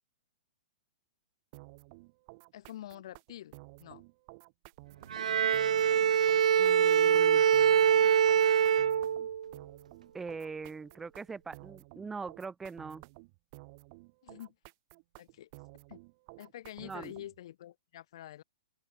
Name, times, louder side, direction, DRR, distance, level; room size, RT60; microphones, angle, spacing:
sound 1, 1.5-17.4, right 28 dB, 25° right, 4.6 m, -53 dB
voice 1, 2.5-4.0 5.3-5.4 14.2-14.5 15.2-15.5 15.9-16.0 16.4-18.4, left 12 dB, 40° left, 4.5 m, -47 dB
Bowed string instrument, 5.1-9.5, right 8 dB, 65° right, 1.2 m, -24 dB
voice 2, 6.6-7.4 10.1-13.0 16.8-17.1, right 4 dB, 5° right, 3.7 m, -42 dB
open air
hypercardioid pair, 175°, 4 cm